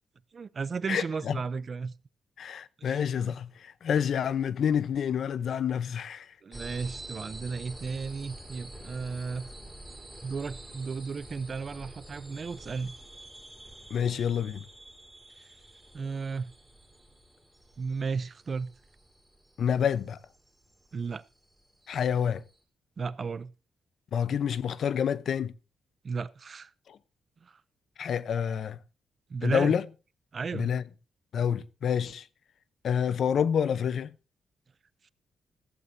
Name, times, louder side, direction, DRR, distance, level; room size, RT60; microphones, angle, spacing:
voice 1, 0.3-1.9 2.8-2.9 6.4-9.5 10.2-13.0 15.9-16.5 17.8-18.7 20.9-21.2 23.0-23.5 26.0-26.7 27.4-27.5 29.3-29.7 30.3-30.7, right 5 dB, 35° right, 0.5 m, -34 dB
voice 2, 0.9-1.4 2.4-6.3 13.9-14.6 19.6-20.2 21.9-22.4 24.1-25.5 26.9-27.0 28.0-28.8 29.4-29.8 30.5-30.8 31.3-32.3 32.8-34.1, left 8 dB, 55° left, 0.7 m, -28 dB
sound 1, 6.5-22.6, right 1 dB, 5° right, 3.9 m, -48 dB
15.0 x 15.0 x 2.7 m
wide cardioid pair, 160°, 0 cm